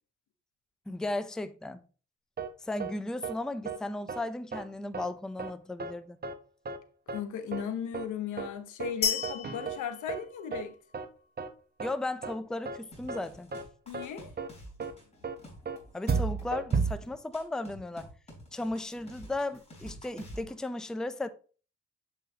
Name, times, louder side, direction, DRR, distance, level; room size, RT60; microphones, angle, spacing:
voice 1, 0.9-1.8 2.6-6.2 11.8-13.5 15.9-18.1 18.5-21.3, left 2 dB, ahead, 0.5 m, -35 dB
sound 1, 2.4-2.5 2.8-2.9 3.2-3.3 3.7-3.8 4.1-4.2 4.5-4.6 4.9-5.1 5.4-5.5 5.8-5.9 6.2-6.3 6.7-6.8 7.1-7.2 7.5-7.6 7.9-8.1 8.4-8.5 8.8-8.9 9.2-9.8 10.1-10.2 10.5-10.6 10.9-11.1 11.4-11.5 11.8-11.9 12.2-12.3 12.7-12.8 13.1-13.2 13.5-13.6 13.9-14.1 14.4-14.5 14.8-14.9 15.2-15.3 15.7-15.8 16.1-16.9, right 5 dB, 30° right, 1.0 m, -32 dB
voice 2, 7.1-10.8 13.9-14.3, left 8 dB, 80° left, 1.0 m, -36 dB
sound 2, 9.0-11.0, left 7 dB, 50° left, 3.4 m, -33 dB
sound 3, 12.9-20.5, equal, 20° left, 3.9 m, -49 dB
7.4 x 5.5 x 2.8 m
cardioid pair, 90°, 30 cm